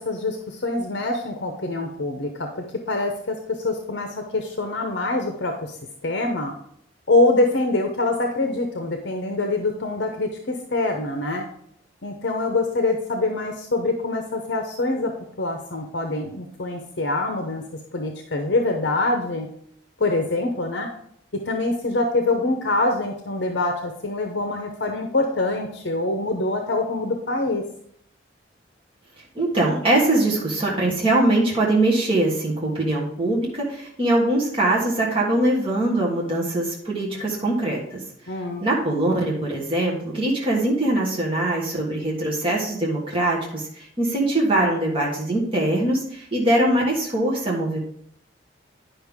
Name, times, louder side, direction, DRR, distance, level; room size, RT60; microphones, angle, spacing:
voice 1, 0.0-5.8 6.0-6.5 7.1-11.4 12.0-17.6 17.9-19.5 20.0-20.9 21.3-27.7 38.3-38.7, left 2 dB, 60° left, 4 dB, 0.8 m, -25 dB
voice 2, 29.3-38.3 38.6-47.8, right 1 dB, 25° right, -3 dB, 1.4 m, -22 dB
9.9 x 5.5 x 3.6 m, 0.69 s
head